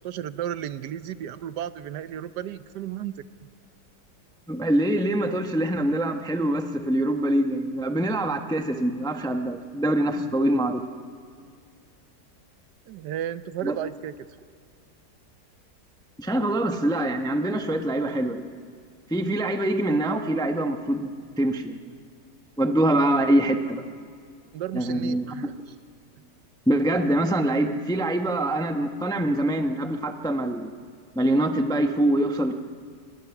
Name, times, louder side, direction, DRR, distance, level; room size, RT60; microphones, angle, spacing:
voice 1, 0.0-3.2 10.4-10.6 12.9-14.1 24.5-25.5, right 11 dB, 80° right, 14 dB, 1.3 m, -33 dB
voice 2, 4.5-10.8 13.6-13.8 16.2-18.4 19.1-21.8 22.6-23.8 24.7-25.5 26.7-30.7 31.1-32.5, right 1 dB, 5° left, 6 dB, 0.6 m, -24 dB
25.5 x 19.5 x 5.9 m, 2.2 s
omnidirectional pair, 1.8 m